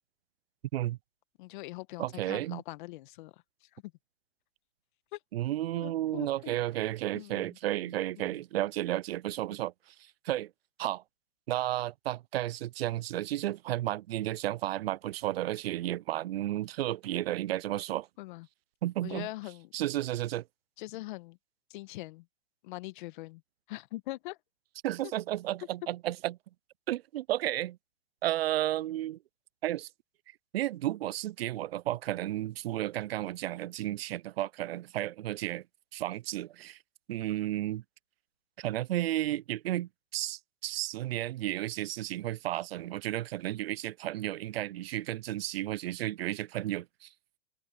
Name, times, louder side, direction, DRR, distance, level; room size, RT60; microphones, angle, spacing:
voice 1, 1.4-3.3 3.6-3.9 5.1-5.2 5.7-6.6 7.1-7.6 8.2-8.3 18.2-18.5 19.0-19.7 20.8-21.4 21.7-22.2 22.6-23.4 23.7-24.4, left 19 dB, 40° left, 1.4 m, -42 dB
voice 2, 2.0-2.6 5.3-10.5 10.8-11.0 11.5-18.1 18.8-19.3 19.7-20.4 24.8-26.4 26.9-27.8 28.2-29.2 29.6-29.9 30.5-35.6 35.9-36.8 37.1-37.8 38.6-47.1, right 14 dB, 55° right, 0.4 m, -33 dB
open air
hypercardioid pair, 140°, 37 cm